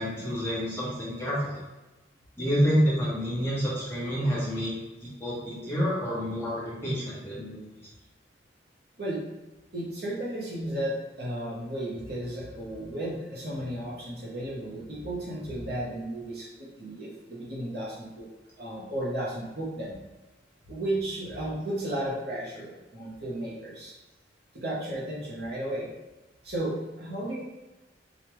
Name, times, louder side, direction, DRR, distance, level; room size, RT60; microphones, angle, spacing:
voice 1, 0.0-1.6 2.4-7.6, equal, 15° left, -8 dB, 1.1 m, -28 dB
voice 2, 9.7-18.3 18.6-20.0 20.7-23.9 24.5-25.9 26.4-27.4, right 1 dB, 55° right, -5 dB, 1.0 m, -34 dB
5.0 x 2.4 x 3.1 m, 1.1 s
head